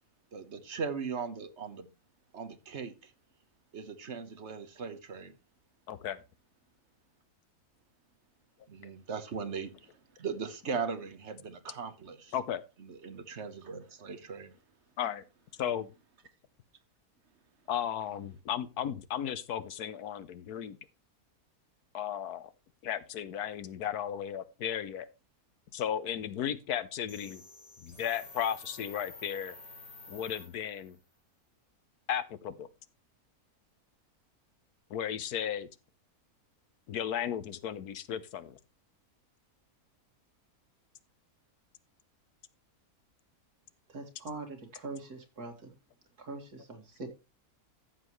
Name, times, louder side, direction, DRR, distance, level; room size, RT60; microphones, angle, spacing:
voice 1, 0.3-1.9 2.3-3.1 3.7-5.3 8.7-9.7 10.2-12.3 12.8-14.5, right 5 dB, 50° right, 1.5 m, -39 dB
voice 2, 5.9-6.2 12.3-12.6 15.0-15.2 15.6-15.9 17.7-20.8 21.9-22.5 22.8-25.1 25.7-27.4 27.8-29.6 30.1-31.0 32.1-32.7 34.9-35.7 36.9-38.6, left 9 dB, 90° left, 1.4 m, -35 dB
sound 1, 27.1-31.0, left 3 dB, 25° left, 2.8 m, -50 dB
voice 3, 43.9-45.7 46.2-47.1, right 3 dB, 80° right, 2.7 m, -43 dB
14.0 x 7.6 x 3.1 m
omnidirectional pair, 1.6 m